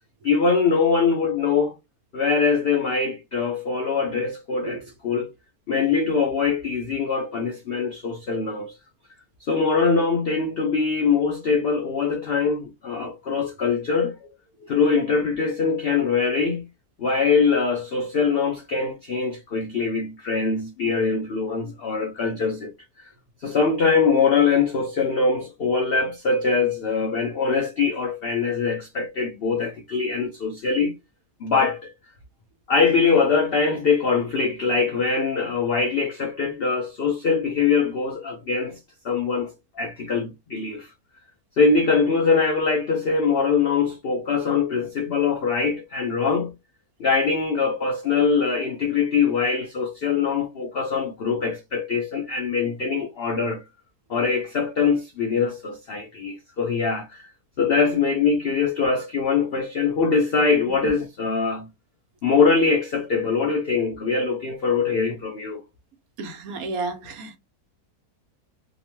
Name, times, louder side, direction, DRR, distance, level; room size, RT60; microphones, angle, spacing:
voice 1, 0.2-1.7 2.1-5.3 5.7-8.7 9.5-14.3 14.6-16.7 17.0-22.7 23.0-23.1 23.4-30.9 31.4-31.9 32.7-38.8 39.0-40.9 41.6-46.5 47.0-53.6 54.1-57.3 57.6-61.7 62.2-65.6, left 5 dB, 85° left, 0.5 m, -23 dB
voice 2, 66.2-67.4, right 3 dB, 70° right, 1.1 m, -31 dB
2.8 x 2.1 x 2.9 m
omnidirectional pair, 1.7 m